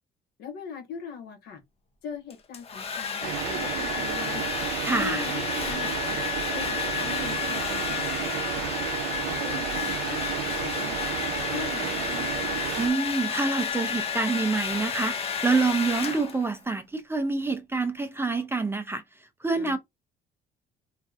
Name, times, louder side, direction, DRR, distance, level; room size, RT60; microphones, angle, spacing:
voice 1, 0.4-1.6 2.0-4.5 4.9-6.2 6.5-8.8 9.2-10.2 10.6-12.6 16.0-16.2 19.5-19.8, left 7 dB, 70° left, 0.9 m, -40 dB
Domestic sounds home sounds, 2.3-16.6, left 7 dB, 35° left, 0.6 m, -31 dB
sound 1, 3.2-12.9, right 13 dB, 80° right, 0.4 m, -32 dB
voice 2, 4.8-5.2 12.8-19.0 19.4-19.8, right 3 dB, 15° right, 0.4 m, -27 dB
3.2 x 2.5 x 2.4 m
cardioid pair, 110°, 17 cm